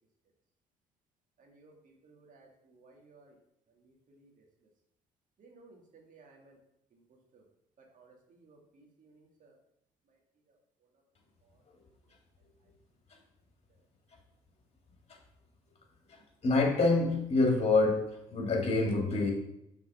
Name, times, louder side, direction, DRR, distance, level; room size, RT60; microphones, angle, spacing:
voice 1, 1.4-3.3 4.1-4.3 5.4-6.6 7.3-7.4 7.9-9.5, right 3 dB, 50° right, 0 dB, 2.1 m, -59 dB
voice 2, 16.1-18.0 18.3-19.3, left 3 dB, 40° left, 0 dB, 2.6 m, -26 dB
5.9 x 4.6 x 5.8 m, 0.82 s
hypercardioid pair, 55°, 17 cm